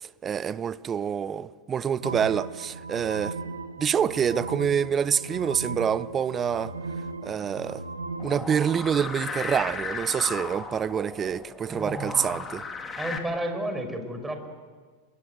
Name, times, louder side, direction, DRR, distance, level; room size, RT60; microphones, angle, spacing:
voice 1, 0.0-3.4 3.8-6.7 7.2-7.8 8.2-12.6, right 7 dB, 25° right, 0.9 m, -27 dB
sound 1, 2.0-8.8, right 3 dB, 85° right, 1.3 m, -37 dB
sound 2, 8.2-13.2, left 4 dB, 20° left, 3.5 m, -35 dB
voice 2, 11.7-12.2 13.0-14.5, right 1 dB, 10° right, 5.5 m, -32 dB
30.0 x 22.0 x 8.1 m
figure-of-eight pair, 85°, 0 cm